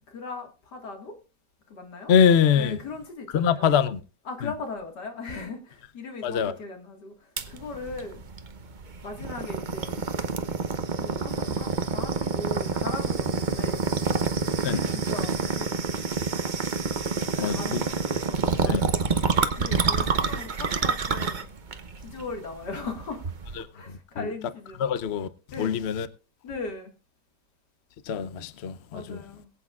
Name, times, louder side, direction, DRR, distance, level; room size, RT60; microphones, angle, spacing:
voice 1, 0.1-1.2 1.7-2.1 2.5-3.8 4.2-8.2 9.0-10.0 11.0-13.9 14.6-16.5 17.2-19.0 19.5-21.5 22.0-23.2 23.6-24.8 25.5-25.8 26.4-26.9 28.9-29.5, left 3 dB, 75° left, 2.5 m, -38 dB
voice 2, 2.1-2.8 3.3-4.0 6.2-6.5 14.6-14.8 17.4-17.8 18.7-18.8 23.6-23.7 24.2-24.3 24.8-25.3 25.6-26.1 28.1-29.2, left 7 dB, 55° left, 0.8 m, -23 dB
sound 1, 7.4-23.6, right 5 dB, 40° right, 0.7 m, -28 dB
22.5 x 8.4 x 2.4 m
omnidirectional pair, 1.8 m